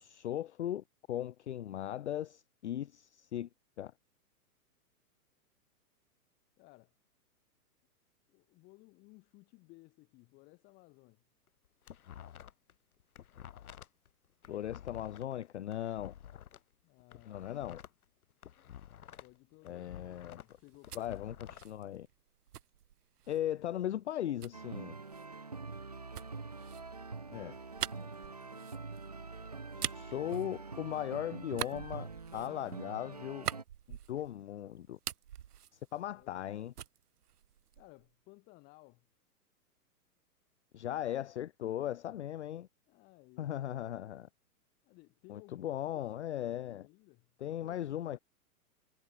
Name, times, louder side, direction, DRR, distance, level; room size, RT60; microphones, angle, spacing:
voice 1, 0.0-3.5 3.8-3.9 14.4-16.2 17.3-17.8 19.6-20.4 20.9-21.3 21.6-22.1 23.3-25.0 27.3-27.5 29.7-33.5 33.9-35.0 35.7-36.7 40.7-42.7 43.4-44.3 45.3-46.9 47.4-48.2, left 11 dB, 45° left, 0.6 m, -38 dB
voice 2, 6.6-6.9 8.3-11.2 16.8-17.6 19.2-21.2 27.5-27.6 28.0-28.7 29.6-30.0 36.1-36.3 37.8-39.1 42.9-43.7 44.8-48.2, left 25 dB, 20° left, 3.1 m, -60 dB
sound 1, 11.5-12.7 13.0-16.6 17.0-19.4 19.6-21.7, left 10 dB, 65° left, 2.8 m, -51 dB
sound 2, 20.5-23.5 24.4-31.1 31.5-34.5 34.8-36.5 36.8-38.1, right 10 dB, 75° right, 1.8 m, -44 dB
sound 3, 24.5-33.6, right 4 dB, 25° right, 0.4 m, -45 dB
hypercardioid pair, 175°, 47 cm